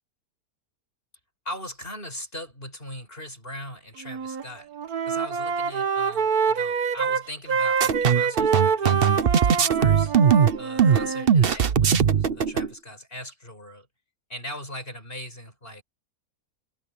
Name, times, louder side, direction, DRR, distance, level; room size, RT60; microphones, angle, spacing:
voice 1, 1.5-4.7 5.1-10.1 10.6-13.9 14.3-15.8, left 1 dB, 35° left, 6.9 m, -39 dB
Wind instrument woodwind instrument, 4.0-4.4 4.7-11.3, right 6 dB, 75° right, 1.8 m, -26 dB
sound 1, 7.8-12.7, right 7 dB, 45° right, 1.0 m, -20 dB
omnidirectional pair, 1.6 m